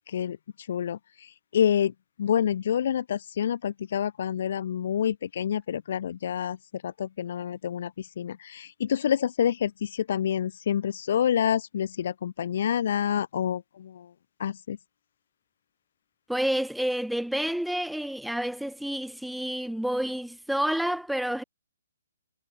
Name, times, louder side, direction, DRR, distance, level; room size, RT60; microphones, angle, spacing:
voice 1, 0.1-0.4 0.7-1.9 2.2-14.1 14.4-14.8, left 9 dB, 60° left, 2.7 m, -28 dB
voice 2, 16.3-21.4, right 1 dB, ahead, 3.5 m, -29 dB
hypercardioid pair, 150°, 0 cm